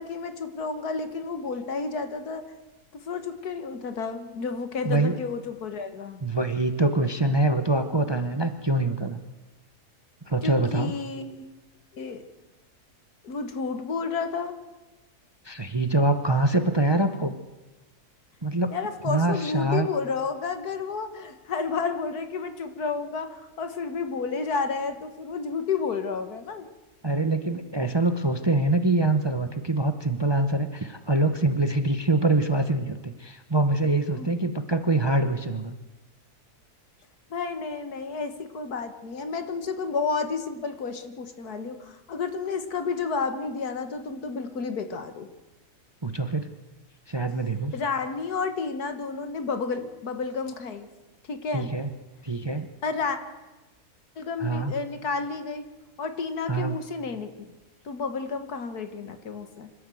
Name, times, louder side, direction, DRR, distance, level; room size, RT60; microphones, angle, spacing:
voice 1, 0.0-2.4 2.9-6.2 10.4-11.5 11.9-12.2 13.2-14.5 18.7-26.7 34.1-34.3 37.3-45.3 47.7-50.9 51.3-51.7 52.8-53.2 54.2-55.7 56.0-57.5 57.9-59.7, left 4 dB, 75° left, 8 dB, 2.0 m, -31 dB
voice 2, 4.8-5.2 6.2-9.2 10.3-10.9 15.4-17.3 18.4-18.7 19.0-19.9 27.0-35.7 46.0-46.5 47.1-47.7 51.5-51.9 52.2-52.7 54.4-54.7 56.5-56.8, right 2 dB, 20° right, 9 dB, 0.8 m, -24 dB
26.0 x 13.0 x 7.8 m, 1.1 s
omnidirectional pair, 1.6 m